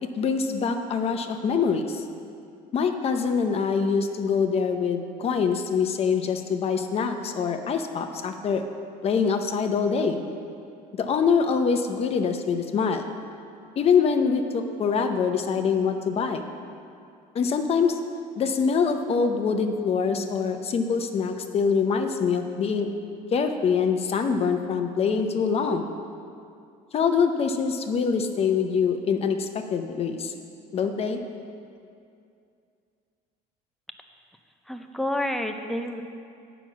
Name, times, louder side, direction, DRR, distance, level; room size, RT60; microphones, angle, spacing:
voice 1, 0.0-2.0 2.7-8.6 9.0-10.2 11.0-13.1 13.8-16.5 17.3-18.0 18.4-22.9 23.3-25.9 26.9-30.3 30.7-31.2, left 5 dB, 40° left, 6 dB, 0.7 m, -24 dB
voice 2, 34.7-36.0, left 1 dB, ahead, 5 dB, 0.6 m, -29 dB
8.9 x 6.0 x 7.2 m, 2.5 s
cardioid pair, 125°, 17 cm